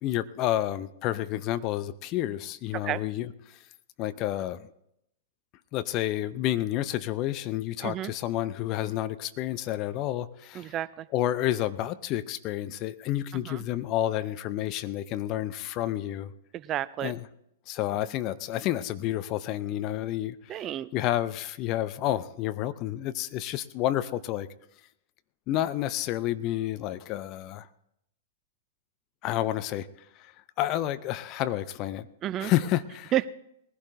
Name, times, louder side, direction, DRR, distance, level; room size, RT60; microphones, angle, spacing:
voice 1, 0.0-3.6 4.0-4.7 5.7-10.7 11.1-16.3 17.0-17.3 17.7-20.7 20.9-24.5 25.5-27.7 29.2-29.9 30.2-30.3 30.6-32.1 32.4-33.1, left 13 dB, 35° left, 13 dB, 0.7 m, -30 dB
voice 2, 10.6-11.1 13.5-13.6 16.5-17.1 20.5-20.9 32.2-32.5 33.1-33.3, right 12 dB, 30° right, 18 dB, 0.4 m, -30 dB
21.0 x 15.5 x 2.7 m, 0.79 s
figure-of-eight pair, 105°, 0 cm